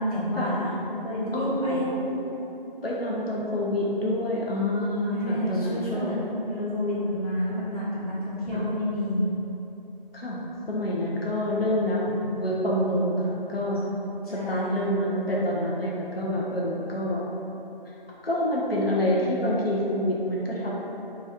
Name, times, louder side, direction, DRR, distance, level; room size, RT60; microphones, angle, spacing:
voice 1, 0.0-1.8 5.1-9.2 14.2-14.7, left 1 dB, 40° left, -9 dB, 0.9 m, -29 dB
voice 2, 1.3-2.2 2.8-6.2 8.5-8.7 10.1-10.4 10.7-13.8 14.3-17.2 18.2-20.7, left 1 dB, 80° left, -5 dB, 0.7 m, -27 dB
3.0 x 2.4 x 4.2 m, 3.0 s
figure-of-eight pair, 170°, 29 cm